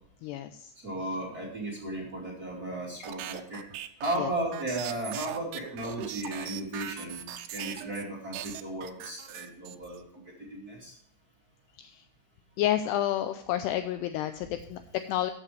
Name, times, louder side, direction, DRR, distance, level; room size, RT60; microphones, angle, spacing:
voice 1, 0.2-0.7 4.2-4.3 11.8-12.0 12.6-15.3, left 12 dB, 90° left, 9 dB, 2.3 m, -30 dB
voice 2, 0.8-3.6 4.0-10.0 10.5-10.9, right 1 dB, 30° right, -4 dB, 2.1 m, -35 dB
sound 1, 3.0-8.0 8.3-10.0, right 12 dB, 75° right, 2.6 m, -40 dB
14.5 x 8.2 x 3.3 m, 0.73 s
omnidirectional pair, 5.4 m